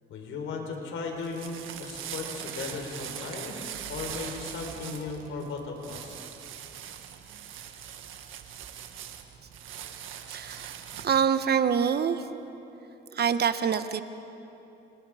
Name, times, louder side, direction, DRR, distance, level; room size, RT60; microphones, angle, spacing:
voice 1, 0.1-3.6 3.9-6.2, left 4 dB, 80° left, 2 dB, 4.4 m, -36 dB
sound 1, 1.0-11.3, right 9 dB, 85° right, 1.7 m, -41 dB
voice 2, 10.3-12.3 13.1-14.0, right 7 dB, 55° right, 10 dB, 1.3 m, -26 dB
29.5 x 26.0 x 5.1 m, 2.9 s
cardioid pair, 90°, 20 cm